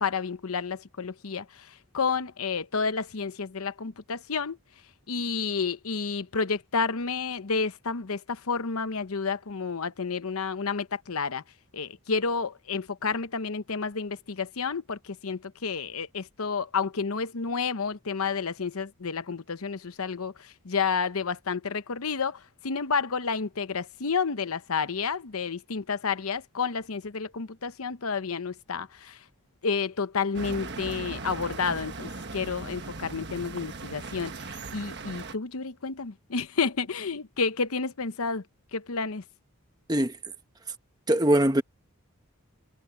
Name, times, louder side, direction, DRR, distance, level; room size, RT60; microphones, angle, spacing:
voice 1, 0.0-4.6 5.1-11.4 11.7-29.2 29.6-38.4 38.7-39.2, left 5 dB, 80° left, 0.9 m, -30 dB
sound 1, 30.3-35.3, right 3 dB, 50° right, 1.4 m, -38 dB
voice 2, 41.1-41.6, right 1 dB, 20° right, 1.2 m, -21 dB
head